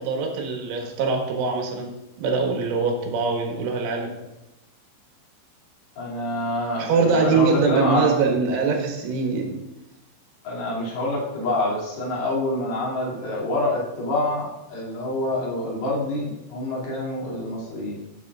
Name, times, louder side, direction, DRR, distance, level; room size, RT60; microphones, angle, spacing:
voice 1, 0.0-4.1 6.8-9.6, right 4 dB, 90° right, 1 dB, 4.0 m, -23 dB
voice 2, 6.0-8.2 10.4-18.0, left 1 dB, 60° left, -5 dB, 4.4 m, -26 dB
14.5 x 7.4 x 2.5 m, 0.94 s
omnidirectional pair, 5.4 m